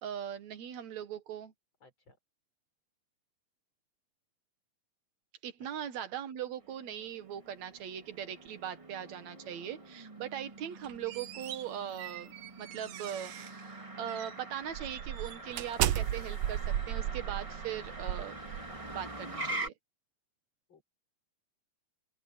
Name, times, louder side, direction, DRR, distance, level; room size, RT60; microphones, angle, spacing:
voice 1, 0.0-1.5 5.4-18.4 18.9-19.7, right 9 dB, 65° right, 2.6 m, -40 dB
voice 2, 1.8-2.2 5.6-5.7 20.7-20.8, left 3 dB, 40° left, 7.0 m, -60 dB
Motor vehicle (road), 6.6-19.7, right 2 dB, 15° right, 1.6 m, -45 dB
sound 1, 10.7-13.6 14.1-14.3 14.7-19.0, right 12 dB, 80° right, 1.3 m, -35 dB
open air
omnidirectional pair, 3.6 m